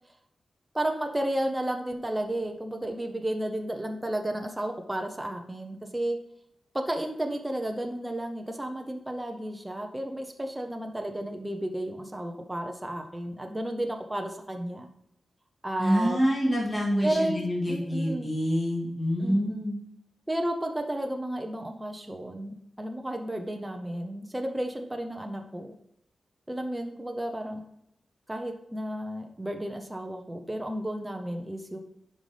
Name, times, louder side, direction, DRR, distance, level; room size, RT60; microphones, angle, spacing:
voice 1, 0.7-6.2 6.7-14.9 15.6-16.2 17.0-18.3 19.2-19.6 20.3-25.7 26.5-27.6 28.3-31.8, right 1 dB, 10° right, 4 dB, 0.6 m, -32 dB
voice 2, 15.8-19.8, equal, 20° left, -4 dB, 2.0 m, -26 dB
9.1 x 5.3 x 3.3 m, 0.80 s
wide cardioid pair, 175°, 0 cm